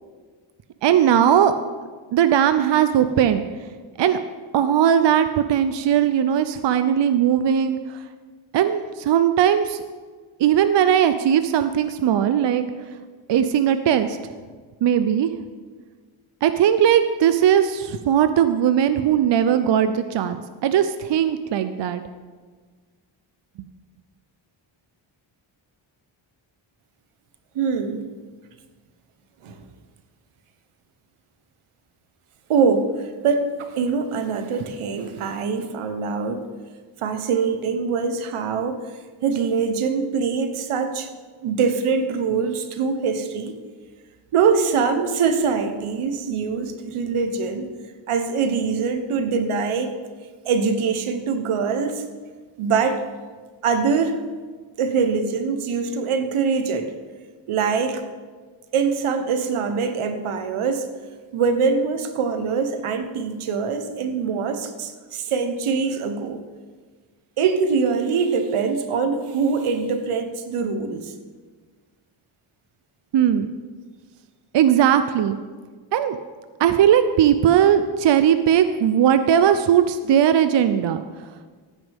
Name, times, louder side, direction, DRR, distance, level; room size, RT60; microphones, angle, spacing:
voice 1, 0.8-1.5 2.1-3.4 4.0-4.2 4.5-8.0 8.5-9.8 10.4-12.6 13.3-14.2 14.8-15.3 16.4-22.0 66.2-66.3 73.1-73.5 74.5-75.4 75.9-76.2 76.6-81.0, right 9 dB, 60° right, 10 dB, 0.6 m, -18 dB
voice 2, 27.5-28.1 29.4-29.6 32.5-36.5 37.0-38.8 39.2-41.1 41.4-43.6 44.3-47.7 48.1-49.9 50.4-52.0 52.6-53.0 53.6-54.2 54.8-56.9 57.5-58.0 58.7-60.9 61.3-66.4 67.4-71.1, right 5 dB, 90° right, 8 dB, 1.2 m, -23 dB
16.0 x 9.5 x 3.6 m, 1.5 s
wide cardioid pair, 120°, 49 cm